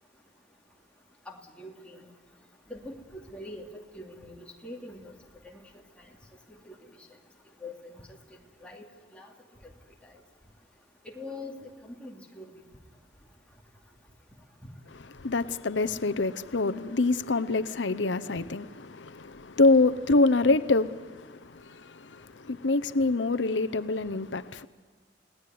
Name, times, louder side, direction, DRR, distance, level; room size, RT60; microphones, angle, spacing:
voice 1, 1.3-2.1 2.7-5.1 6.6-6.7 7.6-8.0 8.6-8.8 9.1-9.3 11.1-11.5 11.8-12.5, left 2 dB, 5° left, 2.8 m, -43 dB
voice 2, 15.1-24.6, left 3 dB, 90° left, 0.8 m, -26 dB
29.5 x 18.0 x 9.4 m
head